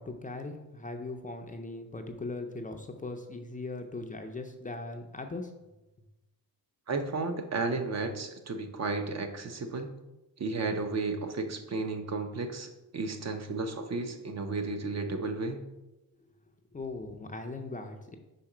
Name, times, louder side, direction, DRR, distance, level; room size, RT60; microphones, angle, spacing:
voice 1, 0.0-5.5 16.7-18.2, left 2 dB, 20° left, 4 dB, 0.5 m, -39 dB
voice 2, 6.9-9.9 10.4-15.7, right 3 dB, 45° right, 6 dB, 0.7 m, -33 dB
5.2 x 4.3 x 4.9 m, 0.99 s
wide cardioid pair, 135°, 37 cm